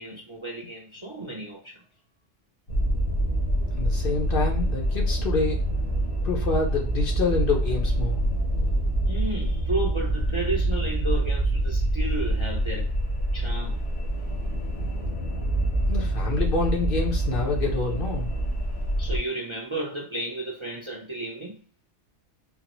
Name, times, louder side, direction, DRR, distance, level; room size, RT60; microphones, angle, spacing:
voice 1, 0.0-1.8 9.0-12.9 13.3-13.8 19.0-21.6, right 2 dB, 35° right, 0.5 m, -33 dB
sound 1, 2.7-19.2, right 1 dB, 85° left, 1.5 m, -26 dB
voice 2, 3.7-5.6 6.2-8.2 15.9-18.4, left 3 dB, 55° left, 0.7 m, -27 dB
3.8 x 2.0 x 2.9 m
omnidirectional pair, 1.2 m